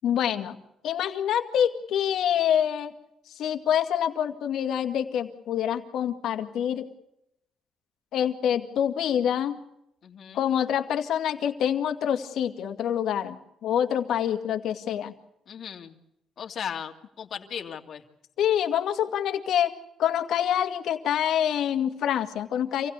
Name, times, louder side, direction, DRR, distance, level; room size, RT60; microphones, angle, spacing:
voice 1, 0.0-0.6 0.8-2.9 3.3-6.9 8.1-9.6 10.3-15.2 18.4-19.7 20.0-22.9, left 9 dB, 75° left, 6 dB, 2.1 m, -26 dB
voice 2, 10.0-10.5 15.5-16.0 16.4-18.0, left 8 dB, 60° left, 5 dB, 2.6 m, -37 dB
27.0 x 16.5 x 8.2 m, 0.82 s
cardioid pair, 90°, 0 cm